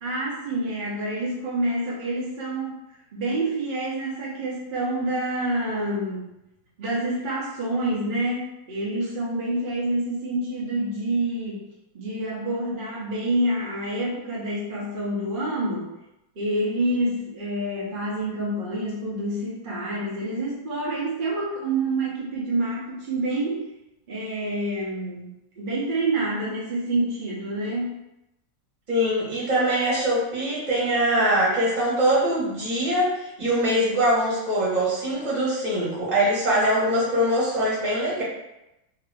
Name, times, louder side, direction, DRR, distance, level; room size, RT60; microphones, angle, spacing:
voice 1, 0.0-6.3 6.8-11.6 11.9-15.9 16.4-23.7 24.1-27.9, right 1 dB, 50° right, -6 dB, 0.6 m, -27 dB
voice 2, 28.9-38.2, right 1 dB, 25° right, -7 dB, 1.2 m, -23 dB
2.9 x 2.8 x 3.3 m, 0.90 s
omnidirectional pair, 2.2 m